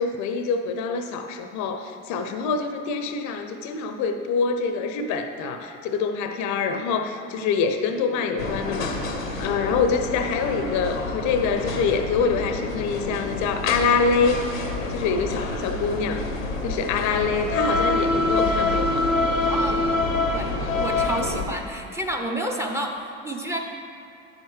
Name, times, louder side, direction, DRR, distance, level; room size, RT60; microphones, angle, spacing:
voice 1, 0.0-9.0 9.4-14.4 14.9-16.2 16.6-19.1, left 5 dB, 50° left, 7 dB, 0.6 m, -25 dB
sound 1, 8.4-21.5, left 2 dB, 90° left, 0.8 m, -26 dB
voice 2, 19.5-19.9 20.3-23.6, right 1 dB, 5° right, 3 dB, 0.7 m, -30 dB
10.0 x 7.3 x 3.2 m, 2.8 s
figure-of-eight pair, 65°, 39 cm